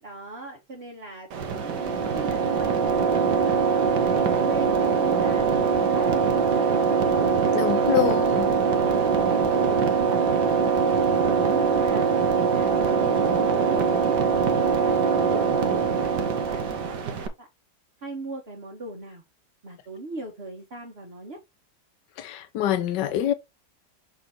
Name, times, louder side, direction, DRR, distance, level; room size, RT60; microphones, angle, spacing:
voice 1, 0.0-3.5 3.8-5.6 5.9-7.3 7.7-7.9 9.0-11.0 11.4-12.1 12.5-16.2 16.5-17.5 18.0-19.2 19.6-21.4, right 1 dB, 40° right, 1.4 m, -40 dB
sound 1, 1.3-17.3, right 6 dB, 75° right, 1.6 m, -22 dB
voice 2, 7.5-8.5 22.2-23.3, left 11 dB, 80° left, 1.4 m, -25 dB
6.5 x 4.0 x 4.3 m
omnidirectional pair, 1.9 m